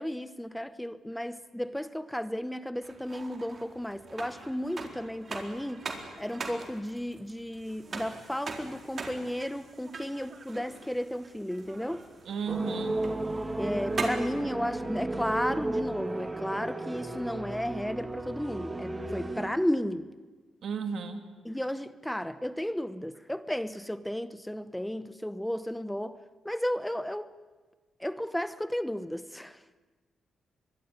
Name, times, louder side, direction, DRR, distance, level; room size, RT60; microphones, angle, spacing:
voice 1, 0.0-5.8 6.2-12.0 13.6-20.1 21.4-27.3 28.0-29.6, equal, 5° left, 1.0 m, -33 dB
sound 1, 2.8-14.4, right 4 dB, 45° right, 4.3 m, -42 dB
voice 2, 12.2-13.0 20.6-21.2, right 5 dB, 70° right, 2.9 m, -33 dB
sound 2, 12.5-19.5, right 2 dB, 20° right, 2.2 m, -34 dB
25.0 x 21.5 x 9.7 m
cardioid pair, 80°, 0 cm